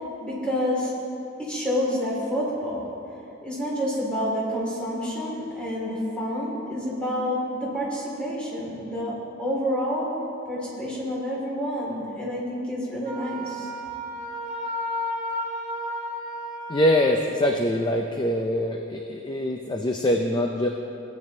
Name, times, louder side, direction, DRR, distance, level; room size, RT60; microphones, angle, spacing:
voice 1, 0.2-0.9 1.4-2.9 3.4-10.1 10.5-13.7, equal, 5° left, -6 dB, 2.2 m, -28 dB
Wind instrument woodwind instrument, 13.0-17.2, left 1 dB, 40° right, 1.2 m, -32 dB
voice 2, 16.7-20.7, left 1 dB, 20° left, 2 dB, 0.4 m, -23 dB
16.5 x 8.8 x 2.7 m, 2.7 s
head